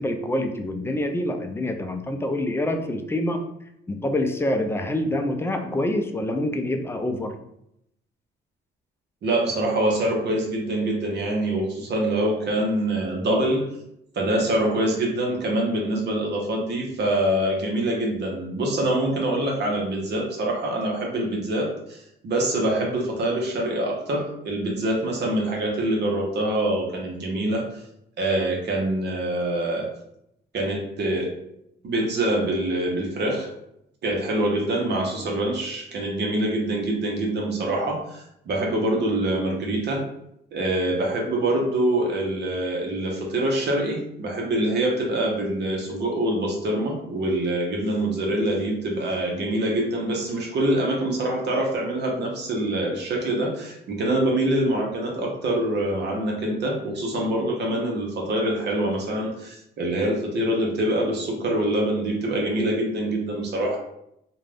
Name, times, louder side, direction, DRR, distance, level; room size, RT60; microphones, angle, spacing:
voice 1, 0.0-3.4 3.9-7.3, left 1 dB, 10° left, 5 dB, 0.3 m, -26 dB
voice 2, 9.2-13.7 14.1-27.8 28.2-29.9 30.5-31.3 31.8-33.5 34.0-40.1 40.5-63.8, right 1 dB, 60° right, -1 dB, 0.7 m, -25 dB
2.4 x 2.2 x 3.3 m, 0.78 s
cardioid pair, 90°, 20 cm